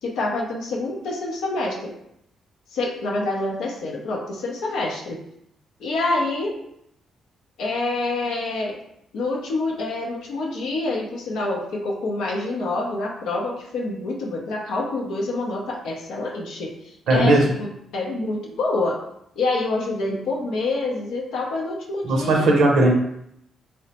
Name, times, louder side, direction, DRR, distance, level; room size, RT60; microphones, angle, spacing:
voice 1, 0.0-1.9 2.7-5.2 5.8-6.5 7.6-8.8 9.1-16.7 17.1-19.0 19.4-22.5, left 2 dB, 80° left, -1 dB, 0.5 m, -27 dB
voice 2, 17.1-17.4 22.0-22.9, right 2 dB, 80° right, 0 dB, 0.6 m, -17 dB
2.9 x 2.0 x 2.8 m, 0.75 s
supercardioid pair, 55°, 0 cm